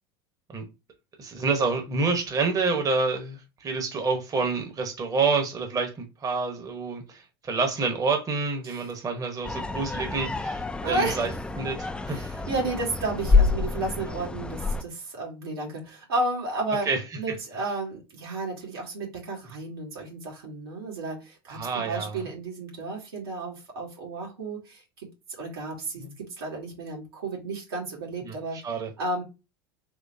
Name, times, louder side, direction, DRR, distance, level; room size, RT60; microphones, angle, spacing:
voice 1, 1.2-11.3 11.6-12.2 16.8-17.0 21.5-22.2 26.0-26.1 28.2-28.9, right 4 dB, 30° right, 1.0 m, -28 dB
sound 1, 9.4-14.8, left 4 dB, 10° left, 0.4 m, -27 dB
voice 2, 10.8-11.3 12.1-16.9 17.2-28.6 29.0-29.2, right 2 dB, 85° right, 1.9 m, -32 dB
3.7 x 3.1 x 2.6 m
hypercardioid pair, 85°, 12 cm